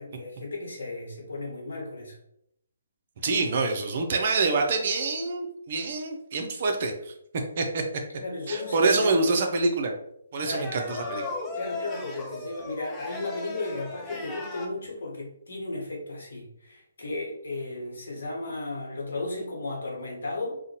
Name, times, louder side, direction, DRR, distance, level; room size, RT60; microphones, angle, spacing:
voice 1, 0.0-2.2 8.2-9.2 10.4-10.8 11.5-20.6, left 2 dB, 65° left, -2 dB, 0.9 m, -35 dB
voice 2, 3.2-7.1 7.6-7.8 8.5-9.9 10.3-11.2, right 3 dB, 50° right, 4 dB, 0.4 m, -26 dB
sound 1, 8.4-9.2 10.5-14.7, left 3 dB, 10° left, 0.4 m, -37 dB
2.5 x 2.1 x 2.7 m, 0.74 s
figure-of-eight pair, 140°, 0 cm